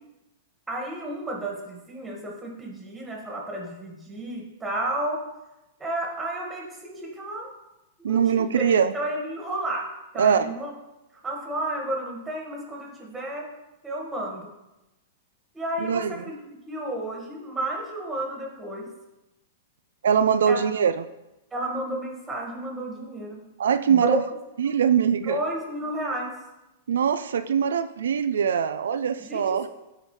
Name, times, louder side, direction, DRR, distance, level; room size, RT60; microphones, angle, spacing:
voice 1, 0.7-5.2 5.8-7.5 8.0-9.9 10.1-10.7 11.2-13.5 13.8-14.5 15.5-16.3 16.7-18.9 20.5-20.6 21.5-23.4 23.9-24.2 24.7-24.8 25.3-26.3 29.2-29.7, right 1 dB, 10° right, -1 dB, 2.0 m, -32 dB
voice 2, 8.0-8.9 10.2-10.5 15.8-16.1 20.0-21.0 23.6-24.2 24.6-25.4 26.9-29.7, right 7 dB, 90° right, 11 dB, 0.4 m, -22 dB
13.0 x 4.8 x 3.3 m, 0.98 s
hypercardioid pair, 145°, 0 cm